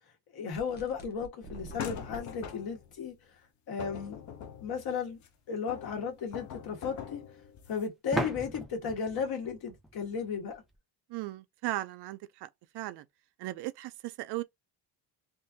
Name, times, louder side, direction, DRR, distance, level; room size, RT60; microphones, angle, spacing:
voice 1, 0.3-3.1 3.7-4.2 4.6-5.2 5.5-7.2 7.7-10.6, left 6 dB, 60° left, 1.5 m, -35 dB
sound 1, 0.5-2.2, right 2 dB, 25° left, 1.0 m, -47 dB
sound 2, 1.8-2.9 3.8-5.3 5.7-7.9, left 8 dB, 45° left, 0.6 m, -43 dB
sound 3, 5.1-5.2 8.1-10.8, right 1 dB, ahead, 0.5 m, -37 dB
voice 2, 11.1-12.5 12.7-13.0 13.4-14.4, right 17 dB, 70° right, 0.5 m, -37 dB
3.7 x 2.6 x 2.7 m
cardioid pair, 160°, 41 cm